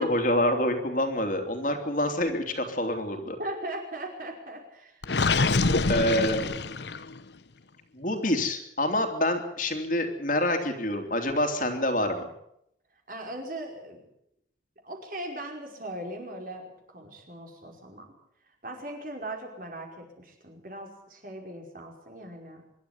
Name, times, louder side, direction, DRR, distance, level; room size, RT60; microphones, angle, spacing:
voice 1, 0.0-3.4 5.9-6.5 7.9-12.3, left 1 dB, 45° left, 5 dB, 3.0 m, -27 dB
voice 2, 3.4-5.0 5.6-6.0 13.1-14.0 14.8-18.1 18.6-22.6, right 1 dB, 45° right, 2 dB, 5.3 m, -39 dB
Gurgling, 5.0-7.2, left 3 dB, 70° left, 1.0 m, -25 dB
24.5 x 12.5 x 9.8 m, 0.77 s
head